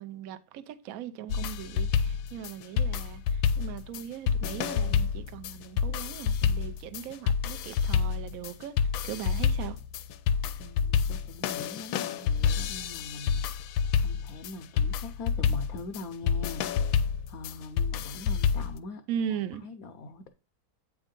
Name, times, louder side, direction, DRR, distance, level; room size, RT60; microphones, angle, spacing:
voice 1, 0.0-8.7 9.0-9.8 19.1-19.6, right 9 dB, 65° right, 0.9 m, -38 dB
sound 1, 1.3-18.8, left 7 dB, 90° left, 1.3 m, -28 dB
voice 2, 10.6-13.4 13.9-19.0 19.6-20.3, left 2 dB, 65° left, 0.9 m, -42 dB
8.2 x 3.6 x 5.1 m
omnidirectional pair, 2.1 m